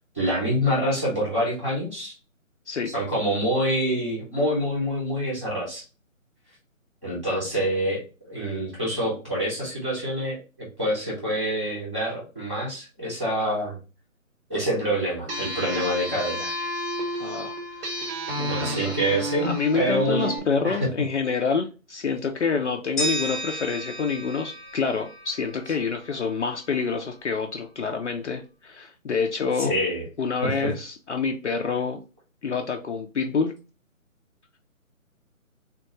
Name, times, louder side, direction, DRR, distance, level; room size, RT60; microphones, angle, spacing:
voice 1, 0.1-2.1 2.9-5.8 7.0-13.8 14.5-16.5 18.5-20.3 20.6-20.9 29.6-30.0 30.4-30.7, equal, 10° right, -10 dB, 0.7 m, -26 dB
sound 1, 15.3-20.4, right 1 dB, 45° right, 0.7 m, -31 dB
voice 2, 17.2-17.5 17.8-18.0 18.4-19.0 19.4-29.7 30.2-32.0 32.4-33.5, left 5 dB, 55° left, 3 dB, 0.5 m, -27 dB
sound 2, 23.0-25.9, right 1 dB, 25° left, 0.9 m, -33 dB
3.6 x 2.3 x 2.9 m, 0.33 s
figure-of-eight pair, 155°, 42 cm